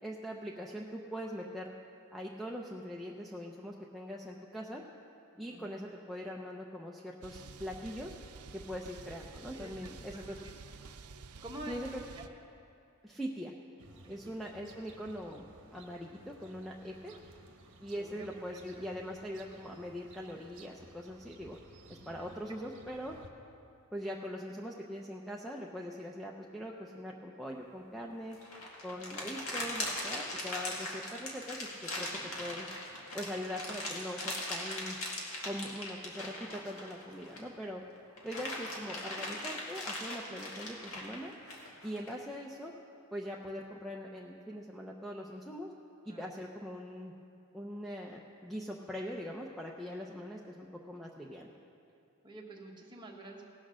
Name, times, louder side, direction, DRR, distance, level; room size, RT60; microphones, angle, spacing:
voice 1, 0.0-1.7 2.1-4.8 5.4-8.2 8.5-10.4 11.7-12.0 13.0-13.5 14.1-15.4 15.7-17.1 17.8-21.6 21.9-23.1 23.9-28.4 28.8-32.7 33.1-35.0 35.4-37.8 38.2-41.3 41.8-42.7 43.1-45.7 46.1-47.1 47.5-51.5, equal, ahead, -2 dB, 0.5 m, -42 dB
sound 1, 7.2-12.3, right 4 dB, 85° right, 0.6 m, -50 dB
voice 2, 9.5-10.7 11.4-11.8 12.1-12.3 14.0-14.3 17.0-17.2 17.9-18.8 22.2-22.3 22.9-23.0 46.0-46.2 52.2-53.4, right 1 dB, 20° right, -1 dB, 1.3 m, -48 dB
sound 2, 13.8-23.3, right 2 dB, 55° right, 1.1 m, -57 dB
sound 3, 28.3-37.6 38.0-42.1, left 1 dB, 65° left, 2.0 m, -39 dB
17.5 x 6.4 x 6.2 m, 2.7 s
head